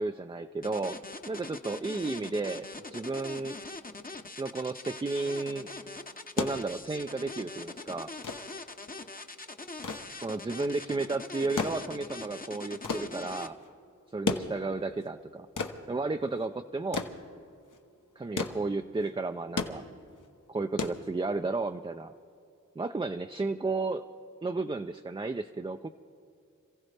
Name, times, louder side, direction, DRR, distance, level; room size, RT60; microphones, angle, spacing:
voice 1, 0.0-3.6 4.4-5.7 6.4-8.1 10.2-13.6 14.1-15.5 15.9-17.1 18.2-19.8 20.5-22.1 22.8-24.0 24.4-25.9, right 3 dB, 15° right, 7 dB, 0.4 m, -33 dB
sound 1, 0.6-13.5, left 3 dB, 25° left, 0.8 m, -42 dB
sound 2, 6.1-21.6 22.9-23.0, left 4 dB, 70° left, 1.0 m, -37 dB
27.0 x 15.0 x 3.3 m, 2.5 s
wide cardioid pair, 55°, 32 cm